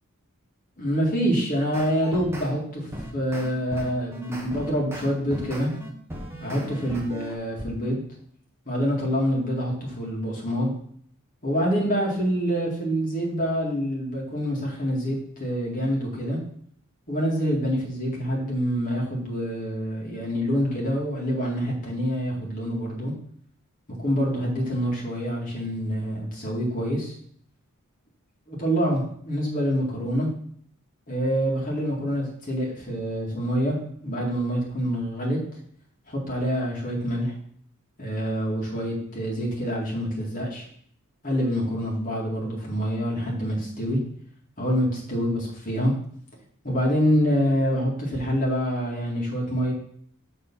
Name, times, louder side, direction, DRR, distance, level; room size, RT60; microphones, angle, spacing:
voice 1, 0.8-2.9 3.1-5.7 6.4-8.0 8.7-10.7 11.4-16.4 17.1-23.1 24.0-27.1 28.5-30.3 31.1-33.8 34.0-35.4 36.1-37.3 38.0-40.7 41.2-44.0 44.6-45.9 46.6-49.7, equal, 40° left, -3 dB, 2.1 m, -26 dB
sound 1, 1.7-2.5 2.9-7.3, equal, 10° right, 0.9 m, -37 dB
6.7 x 3.8 x 5.4 m, 0.62 s
head